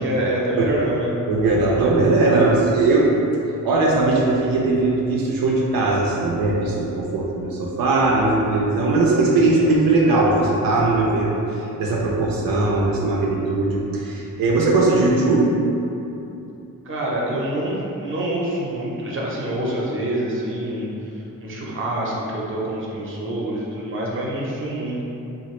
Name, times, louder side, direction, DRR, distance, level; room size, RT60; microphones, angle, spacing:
voice 1, 0.0-1.1 9.4-9.7 16.8-25.0, right 1 dB, 35° right, -4 dB, 0.7 m, -26 dB
voice 2, 1.3-3.1 3.6-15.5, right 2 dB, 85° right, -3 dB, 0.5 m, -19 dB
2.9 x 2.5 x 3.1 m, 2.8 s
cardioid pair, 85°, 34 cm